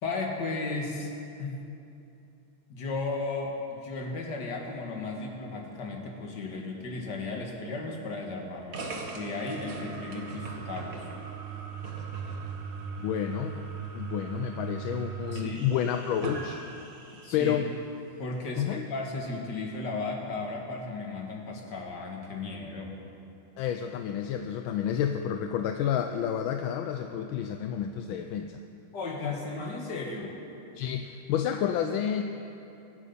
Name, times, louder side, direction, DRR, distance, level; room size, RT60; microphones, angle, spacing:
voice 1, 0.0-1.1 1.4-1.6 2.7-8.8 9.1-11.1 15.3-15.6 17.2-17.5 18.2-23.0 28.9-30.4, left 3 dB, 55° left, 0 dB, 2.3 m, -35 dB
sound 1, 8.7-17.5, right 5 dB, 45° right, 1.6 m, -39 dB
voice 2, 13.0-13.7 13.9-16.6 17.3-17.7 18.6-18.9 23.6-28.6 29.2-29.3 30.8-32.2, left 9 dB, 75° left, 6 dB, 1.3 m, -30 dB
24.5 x 8.3 x 5.5 m, 2.8 s
omnidirectional pair, 2.3 m